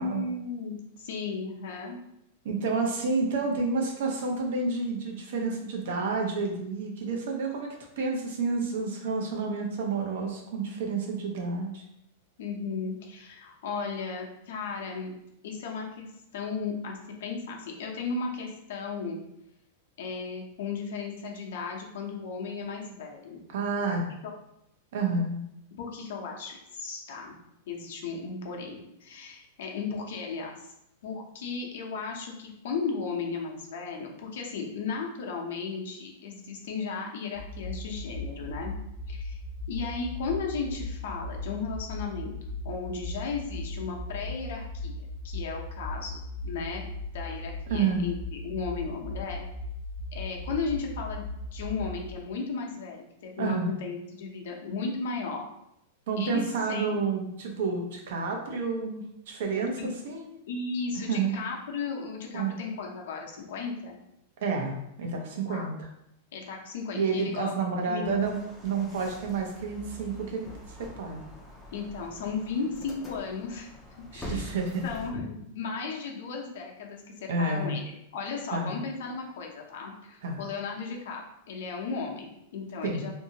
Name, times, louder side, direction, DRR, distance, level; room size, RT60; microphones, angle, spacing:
voice 1, 0.0-2.0 12.4-15.1 15.4-16.1 16.3-19.2 20.0-23.4 24.2-24.3 25.8-27.3 27.7-30.7 31.0-38.7 39.1-39.4 39.7-42.3 42.6-46.2 46.4-46.8 47.1-49.4 50.1-55.5 56.2-56.9 59.8-59.9 60.5-64.0 65.5-65.7 66.3-68.1 71.7-73.7 74.0-74.5 74.8-77.8 78.1-83.2, left 4 dB, 70° left, 0 dB, 0.7 m, -35 dB
voice 2, 2.4-11.8 23.5-24.0 24.9-25.4 47.7-48.1 53.4-53.7 56.1-60.3 61.1-61.3 62.3-62.5 64.4-65.7 66.9-71.2 74.1-74.8 77.3-77.8 78.5-78.7 80.2-80.4 82.8-83.0, right 4 dB, 65° right, 1 dB, 0.7 m, -30 dB
sound 1, 37.3-52.1, left 2 dB, 25° right, 0.8 m, -37 dB
sound 2, 68.0-75.1, equal, 10° left, 0.5 m, -44 dB
2.7 x 2.7 x 2.7 m, 0.80 s
supercardioid pair, 165°, 0 cm